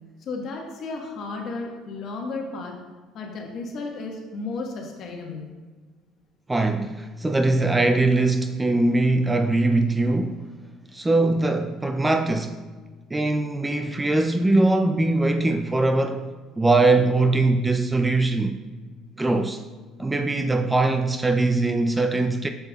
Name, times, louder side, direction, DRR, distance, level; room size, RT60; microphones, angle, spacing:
voice 1, 0.2-2.8 3.1-5.5, left 3 dB, 55° left, 1.3 m, -33 dB
voice 2, 6.5-10.5 10.9-12.6 13.1-18.6 19.2-19.6 20.0-22.5, right 2 dB, 10° right, 0.3 m, -21 dB
7.7 x 6.8 x 2.3 m
cardioid pair, 125°, 0 cm